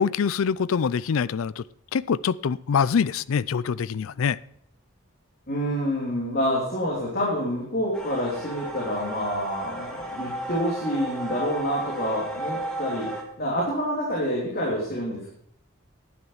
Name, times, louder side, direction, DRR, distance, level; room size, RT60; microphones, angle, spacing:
voice 1, 0.0-1.6 1.9-4.4, left 6 dB, 85° left, 0.4 m, -24 dB
voice 2, 5.5-13.1 13.4-15.3, equal, 45° left, 3.2 m, -27 dB
sound 1, 7.9-13.2, right 2 dB, 5° left, 1.8 m, -34 dB
11.0 x 9.6 x 5.7 m
head